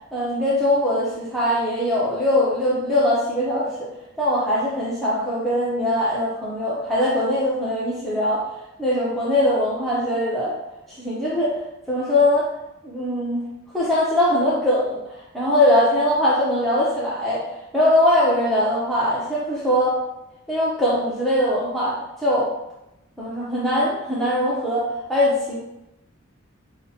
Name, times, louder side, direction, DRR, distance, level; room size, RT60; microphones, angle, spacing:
voice 1, 0.1-3.7 4.2-8.5 8.8-10.5 11.0-11.6 11.9-12.5 12.8-13.4 13.7-17.4 17.7-20.0 20.5-22.5 23.2-25.6, left 1 dB, ahead, -8 dB, 0.6 m, -21 dB
5.5 x 2.1 x 2.7 m, 0.88 s
head